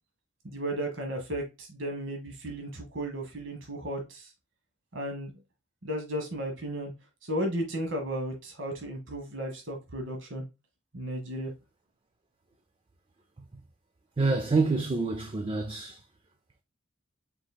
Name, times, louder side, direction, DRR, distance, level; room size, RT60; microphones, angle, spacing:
voice 1, 0.4-4.3 4.9-5.3 5.8-6.9 7.2-10.4 10.9-11.5, right 1 dB, 65° right, 1.2 m, -34 dB
voice 2, 14.2-16.0, right 3 dB, 25° right, 0.4 m, -27 dB
4.7 x 4.0 x 2.2 m
head